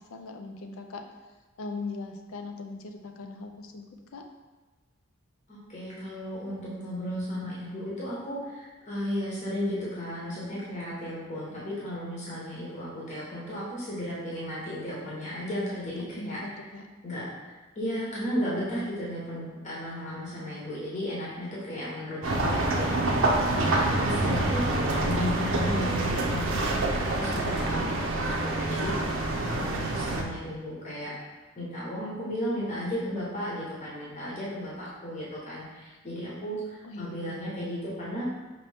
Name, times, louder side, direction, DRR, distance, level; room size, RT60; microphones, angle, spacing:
voice 1, 0.1-1.0 1.6-3.9 4.1-4.2 16.0-16.8 36.8-37.4, left 3 dB, 80° left, 4 dB, 0.5 m, -39 dB
voice 2, 5.5-16.5 17.0-23.1 23.5-28.9 29.4-31.1 31.6-38.3, equal, 35° left, -7 dB, 1.0 m, -34 dB
sound 1, 22.2-30.2, right 2 dB, 65° right, 0.5 m, -27 dB
5.3 x 2.8 x 3.4 m, 1.2 s
head